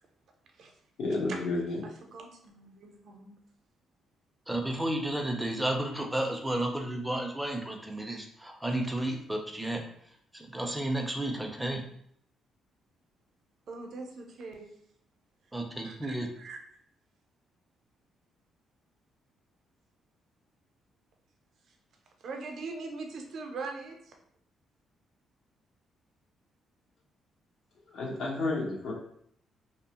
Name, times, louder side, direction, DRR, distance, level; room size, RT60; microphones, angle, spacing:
voice 1, 1.0-1.8 27.9-28.9, left 2 dB, 75° left, -3 dB, 0.8 m, -31 dB
voice 2, 1.8-3.4 13.7-14.7 15.8-16.6 21.7-21.8 22.2-24.2, right 3 dB, 65° right, 3 dB, 0.5 m, -42 dB
voice 3, 4.5-9.8 10.3-11.8 15.5-16.3, right 1 dB, 5° right, 2 dB, 0.5 m, -32 dB
2.7 x 2.0 x 2.8 m, 0.69 s
cardioid pair, 90°, 0 cm